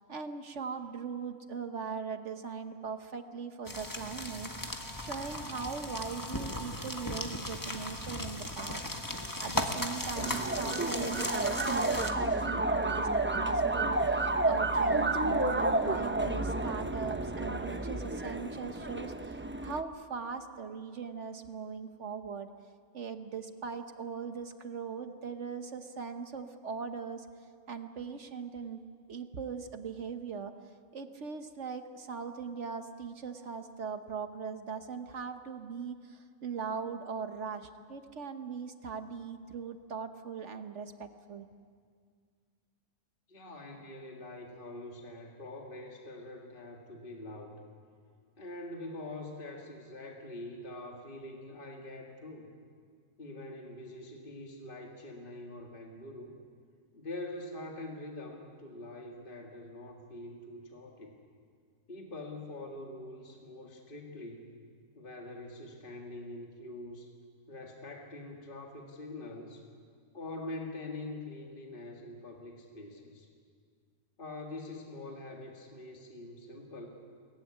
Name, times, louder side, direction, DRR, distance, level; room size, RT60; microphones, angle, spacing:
voice 1, 0.0-8.8 9.4-22.5 22.9-27.3 27.7-28.8 29.1-30.5 30.9-41.5, right 5 dB, 55° right, 8 dB, 1.2 m, -40 dB
sound 1, 3.6-12.1, left 1 dB, 15° left, 1.4 m, -37 dB
sound 2, 10.2-19.8, right 2 dB, 15° right, 0.4 m, -30 dB
voice 2, 43.3-47.6 48.4-52.5 53.2-56.3 56.9-61.2 61.9-64.5 65.0-67.1 67.5-69.6 70.1-73.3 74.2-76.9, left 2 dB, 35° left, 1 dB, 2.2 m, -44 dB
22.5 x 18.5 x 9.6 m, 2.1 s
omnidirectional pair, 1.6 m